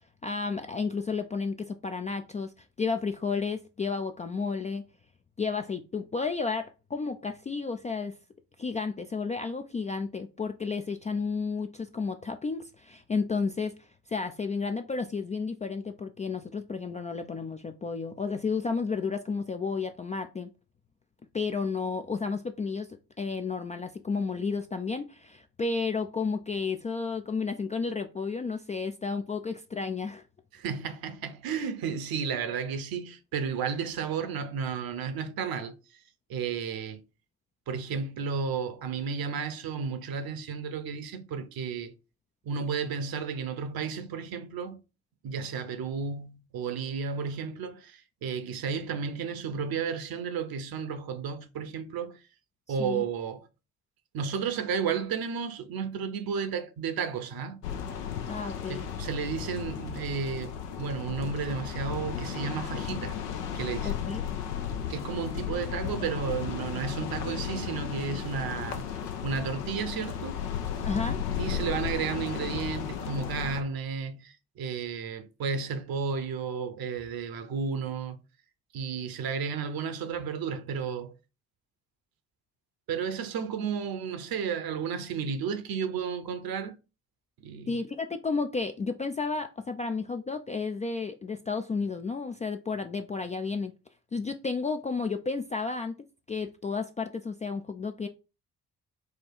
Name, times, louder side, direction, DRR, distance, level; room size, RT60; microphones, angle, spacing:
voice 1, 0.2-4.8 5.4-8.1 8.6-20.5 21.3-22.9 23.2-30.2 52.8-53.0 58.2-58.9 63.8-64.2 70.8-71.2 87.7-93.7 94.1-96.0 96.3-98.1, left 4 dB, 20° left, 0.3 m, -32 dB
voice 2, 30.5-35.8 36.3-37.0 37.7-41.9 42.4-44.8 45.2-52.2 52.7-53.5 54.1-57.6 58.7-63.2 63.5-64.0 64.9-68.9 69.2-70.4 71.4-78.2 78.7-81.1 82.9-86.7 87.4-87.8, right 6 dB, 50° right, 0.9 m, -33 dB
sound 1, 57.6-73.6, left 8 dB, 85° left, 0.6 m, -34 dB
4.4 x 2.3 x 4.5 m
figure-of-eight pair, 45°, 45 cm